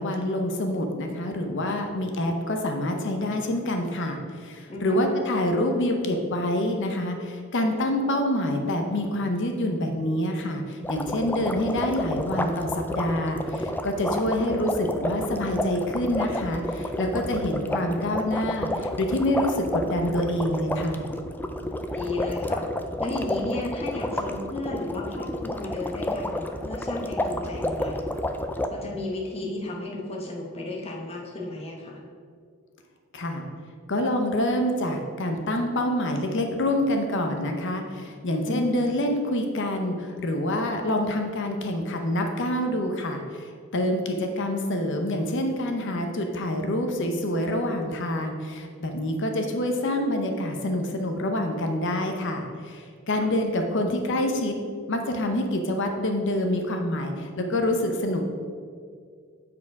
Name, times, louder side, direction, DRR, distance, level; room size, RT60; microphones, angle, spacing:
voice 1, 0.0-21.0 33.1-33.5 33.9-54.6 54.9-58.3, left 1 dB, 60° left, 4 dB, 0.8 m, -26 dB
voice 2, 4.7-5.1 13.9-14.6 21.9-22.7 23.0-28.1 28.7-32.0 38.4-38.8 53.2-53.3, left 2 dB, 30° left, -2 dB, 1.1 m, -34 dB
sound 1, 10.8-28.7, left 1 dB, 10° left, 0.4 m, -30 dB
8.3 x 4.8 x 4.7 m, 2.2 s
head